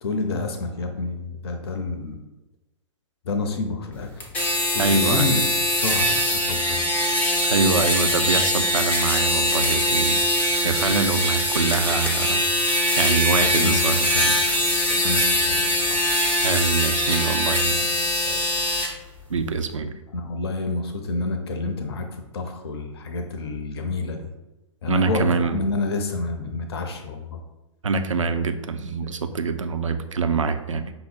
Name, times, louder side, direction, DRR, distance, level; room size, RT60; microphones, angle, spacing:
voice 1, 0.0-2.2 3.2-4.1 4.7-6.9 13.4-14.3 14.5-16.0 17.9-18.0 18.2-18.4 20.1-22.1 22.3-24.3 24.8-27.4, left 3 dB, 50° left, 5 dB, 0.7 m, -29 dB
sound 1, 4.2-18.9, left 1 dB, 10° left, 0.7 m, -22 dB
voice 2, 4.8-5.4 7.4-10.2 10.6-12.5 13.0-14.4 16.4-17.9 19.3-19.9 24.9-25.6 27.8-30.9, right 4 dB, 75° right, 8 dB, 0.4 m, -24 dB
5.6 x 2.0 x 4.1 m, 1.0 s
figure-of-eight pair, 110°, 17 cm